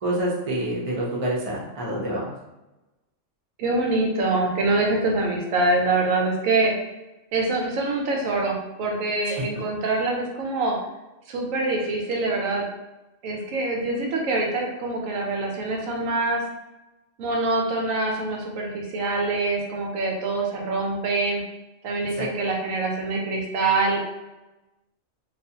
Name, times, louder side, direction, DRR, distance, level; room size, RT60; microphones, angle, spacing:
voice 1, 0.0-2.3 9.3-9.4 22.2-22.3, right 1 dB, 40° right, -4 dB, 0.5 m, -27 dB
voice 2, 3.6-6.7 7.3-10.8 11.3-12.6 13.2-16.4 17.2-21.4 21.8-24.0, right 2 dB, 90° right, 0 dB, 1.0 m, -25 dB
2.4 x 2.3 x 2.7 m, 1.0 s
omnidirectional pair, 1.3 m